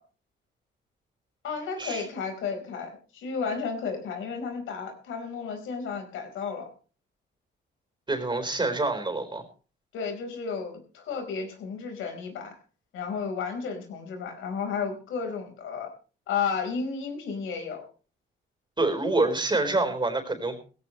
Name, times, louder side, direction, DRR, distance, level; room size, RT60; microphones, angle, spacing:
voice 1, 1.4-6.7 9.9-12.6 12.9-15.9 16.3-17.8, left 5 dB, 80° left, 4 dB, 4.5 m, -33 dB
voice 2, 8.1-9.4 18.8-20.6, right 2 dB, 25° right, 6 dB, 4.2 m, -26 dB
18.0 x 16.5 x 3.2 m, 0.37 s
cardioid pair, 90°, 20 cm